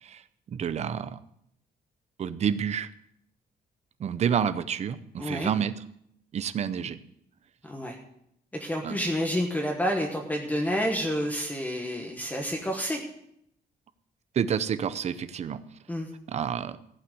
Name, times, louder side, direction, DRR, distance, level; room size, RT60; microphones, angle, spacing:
voice 1, 0.5-1.2 2.2-2.9 4.0-5.7 6.3-7.0 8.8-9.0 14.3-15.6 16.3-16.8, right 8 dB, 40° right, 13 dB, 0.6 m, -29 dB
voice 2, 5.2-5.5 7.7-8.0 8.5-13.0 15.9-16.1, equal, 10° left, 1 dB, 1.2 m, -29 dB
15.5 x 5.8 x 9.3 m, 0.75 s
wide cardioid pair, 175°, 17 cm